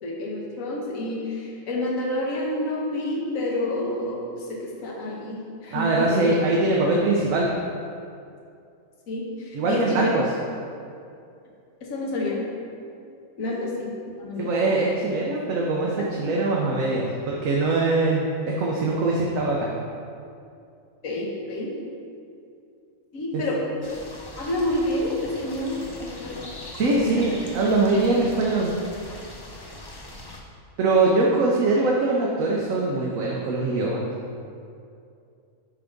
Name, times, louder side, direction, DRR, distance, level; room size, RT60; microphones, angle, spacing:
voice 1, 0.0-6.2 9.1-10.1 11.8-12.4 13.4-13.9 14.2-14.5 16.0-16.1 21.0-21.7 23.1-23.6 24.4-26.4 26.9-27.1, left 1 dB, 70° left, -2 dB, 1.5 m, -29 dB
voice 2, 5.7-7.5 9.5-10.2 14.4-19.7 23.3-23.4 26.8-28.7 30.8-34.0, right 2 dB, 70° right, -3 dB, 1.1 m, -22 dB
sound 1, 23.8-30.4, left 1 dB, 30° left, 0.4 m, -41 dB
9.6 x 3.5 x 5.2 m, 2.5 s
omnidirectional pair, 1.5 m